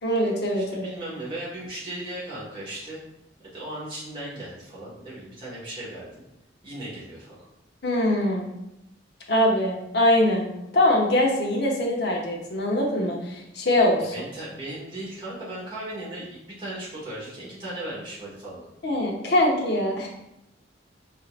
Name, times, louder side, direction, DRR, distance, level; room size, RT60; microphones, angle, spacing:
voice 1, 0.0-0.9 7.8-8.4 9.3-14.1 18.8-20.1, left 1 dB, 55° left, -1 dB, 0.8 m, -23 dB
voice 2, 0.6-3.0 3.4-6.2 6.6-7.5 14.1-18.7, right 1 dB, 25° right, -8 dB, 1.5 m, -37 dB
5.1 x 2.8 x 2.4 m, 0.86 s
head